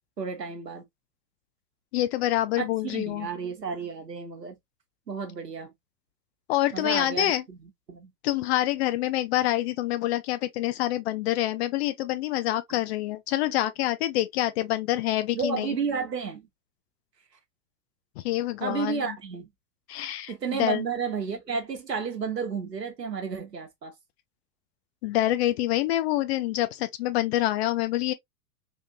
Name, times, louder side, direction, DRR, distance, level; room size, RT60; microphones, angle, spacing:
voice 1, 0.2-0.8 2.6-4.6 5.1-5.7 6.7-7.6 7.9-8.1 15.3-16.5 18.6-19.5 20.3-23.9, right 6 dB, 85° right, 1.1 m, -32 dB
voice 2, 1.9-3.3 6.5-7.4 8.2-15.8 18.2-19.2 19.9-20.8 25.0-28.1, left 14 dB, 45° left, 0.6 m, -26 dB
3.6 x 2.5 x 2.2 m
figure-of-eight pair, 90°, 48 cm